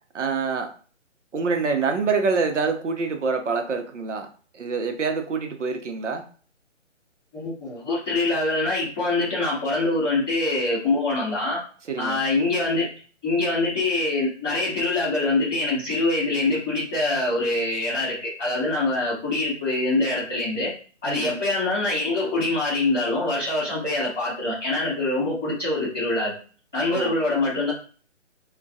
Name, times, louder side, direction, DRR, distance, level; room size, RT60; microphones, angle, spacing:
voice 1, 0.1-0.7 1.3-4.3 4.5-6.2 11.9-12.2 21.0-21.4 26.9-27.2, right 4 dB, 70° right, 5 dB, 0.6 m, -26 dB
voice 2, 7.3-11.6 12.0-12.9 13.2-20.7 21.0-26.3 26.7-27.7, left 2 dB, 5° left, -22 dB, 0.4 m, -24 dB
2.2 x 2.2 x 2.6 m, 0.40 s
figure-of-eight pair, 145°, 37 cm